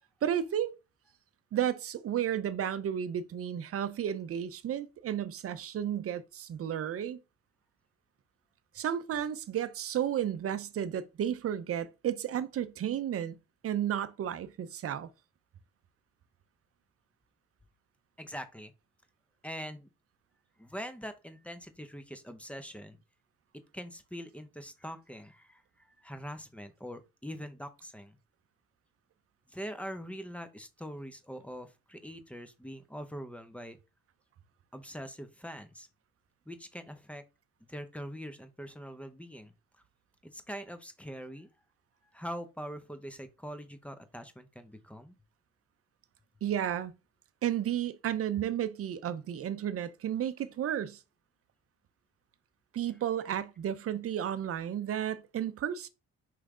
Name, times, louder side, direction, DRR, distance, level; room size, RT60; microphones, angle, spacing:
voice 1, 0.2-0.7 1.5-7.2 8.7-13.4 13.6-15.1 46.4-46.9 47.4-51.0 52.7-55.9, right 10 dB, 50° right, 0.6 m, -32 dB
voice 2, 18.2-18.7 19.4-19.9 20.6-23.0 23.5-28.2 29.5-33.8 34.7-35.9 36.5-37.2 37.7-39.8 40.3-41.5 42.1-45.2, equal, 5° left, 0.6 m, -43 dB
4.7 x 3.1 x 3.6 m
cardioid pair, 90°, 30 cm